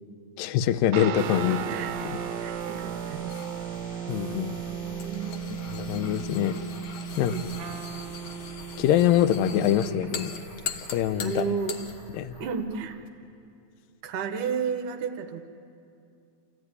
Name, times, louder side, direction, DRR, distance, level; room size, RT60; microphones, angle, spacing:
voice 1, 0.4-1.6 2.0-2.2 4.1-4.6 5.7-6.6 7.2-7.4 8.8-10.3 10.9-11.4 12.1-12.4, left 11 dB, 80° left, 12 dB, 2.3 m, -24 dB
sound 1, 0.9-10.6, right 9 dB, 85° right, 2.6 m, -36 dB
sound 2, 1.1-13.1, left 1 dB, 40° left, 0.7 m, -47 dB
voice 2, 1.4-1.9 2.4-3.3 4.7-6.1 7.3-7.6 11.2-11.8 12.4-13.0 14.0-15.4, right 6 dB, 65° right, 7 dB, 2.4 m, -33 dB
sound 3, 3.3-12.0, left 6 dB, 65° left, 1.7 m, -41 dB
29.0 x 14.5 x 9.7 m, 2.6 s
omnidirectional pair, 4.2 m